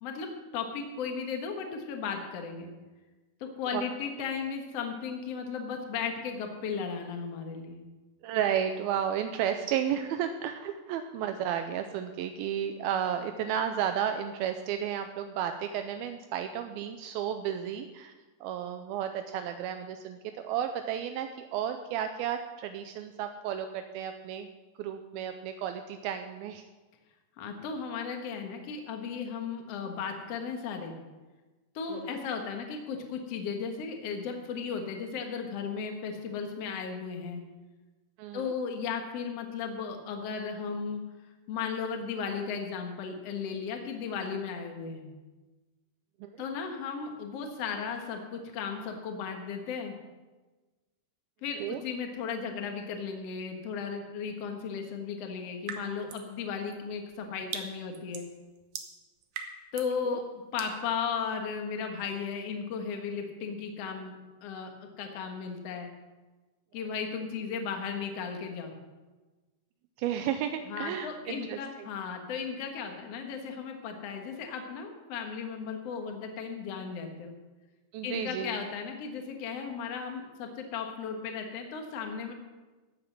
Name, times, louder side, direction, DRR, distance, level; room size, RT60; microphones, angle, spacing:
voice 1, 0.5-2.7 3.4-7.8 27.4-31.0 31.7-37.4 38.3-41.0 41.5-45.0 46.4-49.9 51.4-58.2 59.7-60.2 60.5-64.1 64.4-65.9 66.7-68.7 70.7-77.3 78.0-82.3, left 6 dB, 55° left, 4 dB, 1.8 m, -35 dB
voice 2, 8.2-18.1 18.4-20.2 20.4-24.5 24.8-26.6 31.9-32.2 38.2-38.5 46.2-46.3 51.6-51.8 60.1-60.2 70.0-71.9 77.9-78.5, right 9 dB, 85° right, 7 dB, 2.2 m, -33 dB
sound 1, 55.7-56.3 56.7-60.0 60.6-60.8, right 7 dB, 65° right, 2.1 m, -41 dB
14.5 x 8.8 x 6.0 m, 1.2 s
omnidirectional pair, 4.8 m